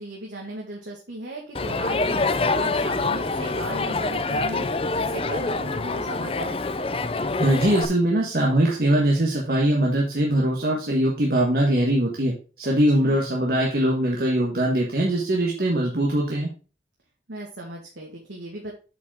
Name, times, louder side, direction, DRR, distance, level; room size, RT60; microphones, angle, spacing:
voice 1, 0.0-6.6 13.0-13.2 17.3-18.7, right 2 dB, 85° right, -1 dB, 1.8 m, -37 dB
Crowd, 1.5-7.9, left 3 dB, 30° left, 0.5 m, -26 dB
voice 2, 7.4-16.5, right 1 dB, 55° right, -2 dB, 1.4 m, -22 dB
8.2 x 5.3 x 3.6 m, 0.36 s
head